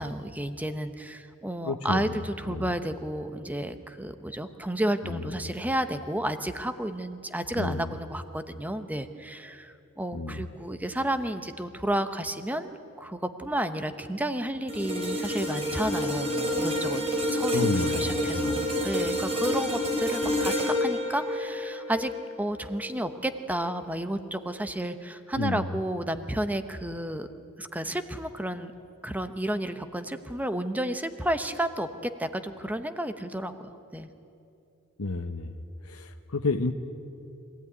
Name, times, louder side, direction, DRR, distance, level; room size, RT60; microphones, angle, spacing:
voice 1, 0.0-17.0 17.3-22.1 22.4-27.3 27.6-28.7 29.0-34.1, right 1 dB, 5° right, 9 dB, 0.9 m, -32 dB
voice 2, 1.6-2.2 2.5-2.7 5.0-5.2 7.6-7.9 10.1-10.4 17.5-18.7 25.4-25.7 35.0-35.5 35.8-36.7, left 3 dB, 80° left, 6 dB, 1.0 m, -30 dB
sound 1, 14.7-23.0 23.5-23.7, left 1 dB, 30° right, 3.7 m, -29 dB
24.5 x 16.0 x 9.6 m, 2.7 s
head